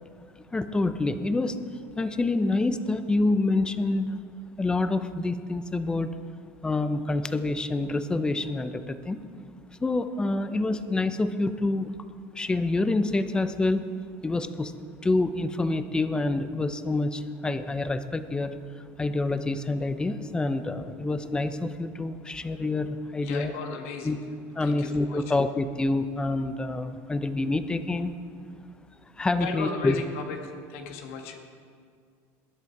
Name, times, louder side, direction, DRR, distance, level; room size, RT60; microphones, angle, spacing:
voice 1, 0.5-1.6 2.0-4.2 4.6-6.1 6.6-9.2 9.8-12.0 12.4-13.9 14.2-14.7 15.0-18.5 19.0-23.5 24.0-24.2 24.6-28.1 29.2-30.0, left 2 dB, 10° left, 11 dB, 0.7 m, -27 dB
voice 2, 23.2-24.2 24.6-25.3 29.4-31.4, left 5 dB, 80° left, 3 dB, 1.9 m, -36 dB
20.0 x 10.5 x 4.7 m, 2.2 s
supercardioid pair, 130°, 7 cm